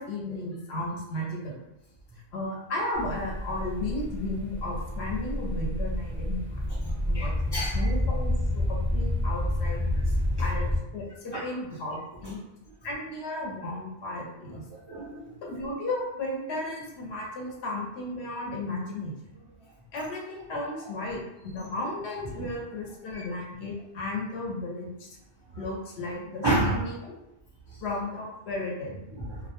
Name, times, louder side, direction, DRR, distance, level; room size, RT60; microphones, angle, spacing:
voice 1, 0.0-1.6 2.3-9.9 10.4-12.4 12.8-14.6 15.4-19.2 19.9-25.1 25.6-26.9 27.8-29.0, left 2 dB, 70° left, -2 dB, 0.9 m, -34 dB
sound 1, 2.9-10.8, left 1 dB, 20° left, 0.5 m, -29 dB
voice 2, 6.8-7.3 7.5-7.8 10.1-10.2 11.3-11.4 14.7-15.3 22.4-22.5 23.1-23.2 26.4-26.8 29.1-29.5, right 1 dB, 40° right, -8 dB, 0.3 m, -29 dB
2.2 x 2.1 x 2.8 m, 0.90 s
omnidirectional pair, 1.2 m